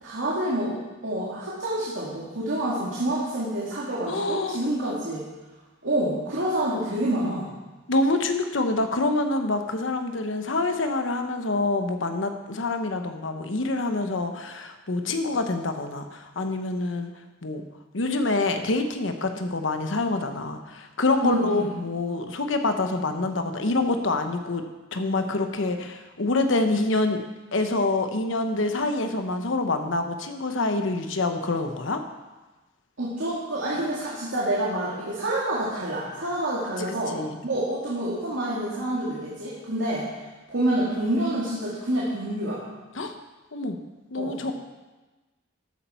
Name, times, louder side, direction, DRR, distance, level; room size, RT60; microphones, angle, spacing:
voice 1, 0.0-0.8 1.0-5.2 5.8-7.5 21.2-21.7 33.0-37.2 37.4-40.1 40.5-42.6 44.1-44.5, right 1 dB, 90° right, -7 dB, 2.4 m, -27 dB
voice 2, 4.1-4.6 4.8-5.0 7.9-17.1 17.4-17.6 17.9-24.6 24.9-27.2 27.5-32.0 37.1-37.4 42.9-43.1 43.5-43.8 44.1-44.5, left 2 dB, 85° left, 7 dB, 1.0 m, -26 dB
12.5 x 8.5 x 4.4 m, 1.2 s
head